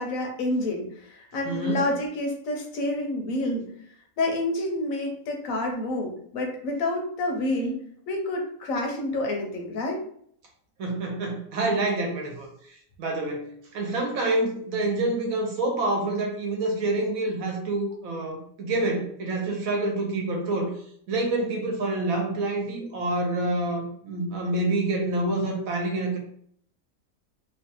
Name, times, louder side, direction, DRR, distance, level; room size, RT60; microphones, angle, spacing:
voice 1, 0.0-3.7 4.2-10.0, left 1 dB, 70° left, 1 dB, 1.0 m, -28 dB
voice 2, 1.4-1.8 10.8-20.7 21.1-26.2, right 2 dB, 70° right, 1 dB, 1.1 m, -27 dB
3.0 x 2.2 x 2.8 m, 0.64 s
omnidirectional pair, 1.6 m